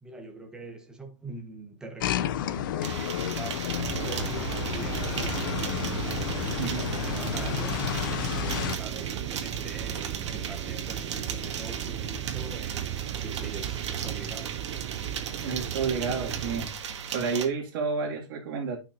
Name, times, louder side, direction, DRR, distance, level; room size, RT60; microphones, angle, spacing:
voice 1, 0.0-5.9 6.5-7.9 8.4-14.6, right 2 dB, 5° right, 1.0 m, -43 dB
sound 1, 2.0-8.8, left 11 dB, 45° left, 0.5 m, -31 dB
sound 2, 2.8-17.5, right 7 dB, 70° right, 1.5 m, -37 dB
sound 3, 3.8-16.7, right 11 dB, 20° right, 0.4 m, -35 dB
voice 2, 6.6-6.9 15.4-16.7 17.1-18.8, right 5 dB, 45° right, 2.3 m, -30 dB
12.0 x 5.8 x 2.7 m
hypercardioid pair, 165°, 16 cm